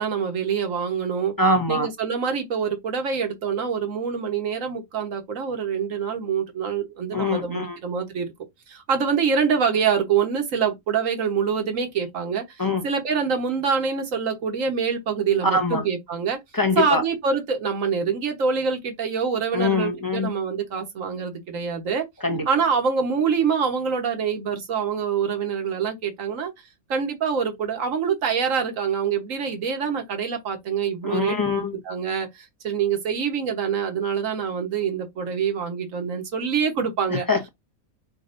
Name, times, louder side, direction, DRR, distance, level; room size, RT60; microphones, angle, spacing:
voice 1, 0.0-1.3 1.7-8.3 8.7-16.4 16.8-22.1 22.4-26.5 26.9-31.4 31.8-37.3, right 6 dB, 65° right, 1.6 m, -25 dB
voice 2, 1.4-1.9 7.1-7.8 12.6-12.8 15.4-15.9 16.5-17.0 19.5-20.3 22.2-22.4 31.0-31.8 37.3-37.5, left 2 dB, 20° left, 0.8 m, -23 dB
6.2 x 2.7 x 2.6 m
omnidirectional pair, 1.5 m